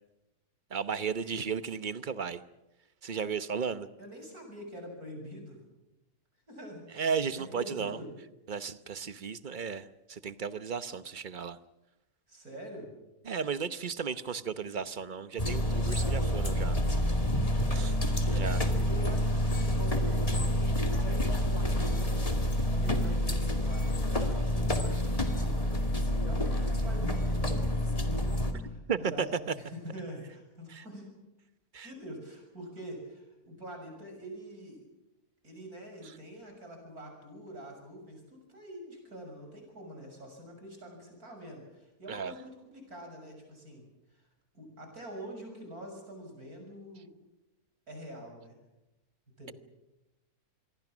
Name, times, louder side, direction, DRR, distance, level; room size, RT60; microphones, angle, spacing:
voice 1, 0.7-2.4 3.0-3.9 6.9-8.0 8.5-11.6 13.2-16.8 17.7-17.9 18.3-18.6 28.9-29.3 30.7-30.8 31.7-31.9 36.0-36.1 42.1-42.3, right 6 dB, 40° right, 13 dB, 0.9 m, -34 dB
voice 2, 4.0-5.6 6.5-7.1 7.5-8.1 12.3-12.9 17.5-20.6 21.3-22.1 22.6-25.9 26.2-31.1 31.8-34.8 35.4-43.9 44.1-44.2 44.5-47.1 47.9-48.6 49.4-49.5, equal, 75° right, 3 dB, 7.2 m, -45 dB
sound 1, 15.4-28.5, equal, 25° left, 2.3 m, -28 dB
26.5 x 22.5 x 6.2 m, 0.97 s
omnidirectional pair, 1.6 m